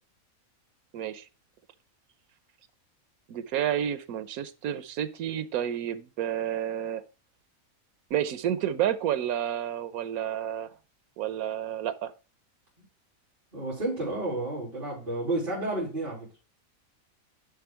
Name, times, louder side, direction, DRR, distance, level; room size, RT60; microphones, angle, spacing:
voice 1, 0.9-1.3 3.3-7.0 8.1-10.7 11.2-12.1, right 10 dB, 90° right, 15 dB, 1.2 m, -30 dB
voice 2, 13.5-16.3, right 2 dB, 35° right, -8 dB, 3.7 m, -31 dB
10.5 x 3.6 x 4.6 m, 0.32 s
omnidirectional pair, 1.5 m